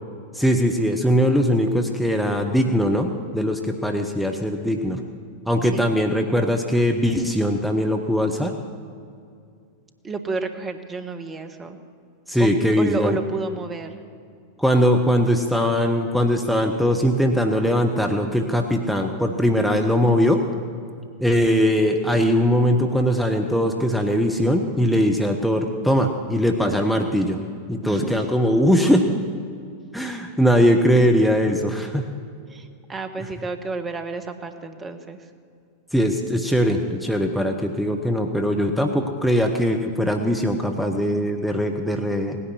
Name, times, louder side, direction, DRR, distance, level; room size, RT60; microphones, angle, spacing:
voice 1, 0.3-5.0 5.5-8.5 12.3-13.2 14.6-20.4 21.2-27.4 27.7-29.1 29.9-32.1 35.9-42.4, equal, ahead, 3 dB, 1.0 m, -20 dB
voice 2, 10.0-11.8 12.4-12.5 12.8-14.0 27.8-28.2 32.5-35.3, right 3 dB, 20° right, 8 dB, 1.2 m, -31 dB
18.0 x 10.0 x 7.3 m, 2.3 s
figure-of-eight pair, 90°, 0 cm